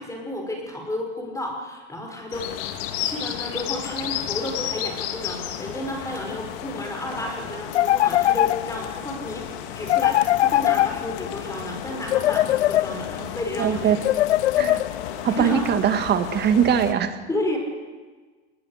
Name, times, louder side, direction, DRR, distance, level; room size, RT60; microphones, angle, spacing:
voice 1, 0.0-2.6 2.9-9.5 9.7-14.0 15.2-15.6 17.3-17.6, left 1 dB, 10° left, 1 dB, 5.4 m, -32 dB
sound 1, 2.3-16.9, left 10 dB, 50° left, 2.6 m, -33 dB
sound 2, 7.7-9.0 9.9-11.4 12.1-13.3 14.0-15.2, left 14 dB, 70° left, 0.6 m, -21 dB
voice 2, 13.6-14.0 14.6-14.8 15.2-17.2, right 8 dB, 30° right, 9 dB, 2.0 m, -21 dB
25.5 x 20.5 x 6.6 m, 1.4 s
hypercardioid pair, 100°, 34 cm